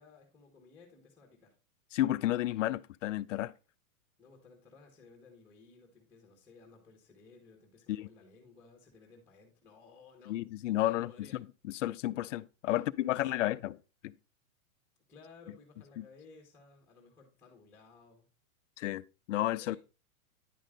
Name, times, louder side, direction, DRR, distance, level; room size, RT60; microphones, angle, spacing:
voice 1, 0.0-1.5 4.2-11.4 12.7-13.5 15.1-18.3 19.6-19.8, left 4 dB, 5° left, 1.5 m, -57 dB
voice 2, 1.9-3.5 7.9-8.1 10.3-13.7 14.0-14.1 16.0-16.1 18.8-19.8, left 14 dB, 60° left, 0.5 m, -32 dB
10.0 x 5.3 x 3.8 m
hypercardioid pair, 155°, 43 cm